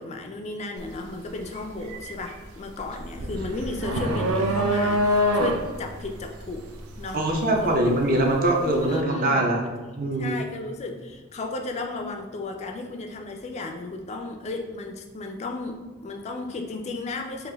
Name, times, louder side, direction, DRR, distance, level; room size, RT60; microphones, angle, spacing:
voice 1, 0.0-6.7 7.0-7.2 7.6-7.8 8.1-8.2 8.6-9.9 10.2-17.5, left 3 dB, 30° left, 4 dB, 0.3 m, -34 dB
sound 1, 0.8-1.0 1.4-8.4, equal, 90° right, 0.5 m, -26 dB
Bass guitar, 4.0-10.2, right 1 dB, 10° right, 0.7 m, -40 dB
voice 2, 7.1-9.6 10.0-10.5, right 1 dB, 45° right, 1 dB, 0.6 m, -23 dB
4.2 x 2.4 x 3.4 m, 1.3 s
head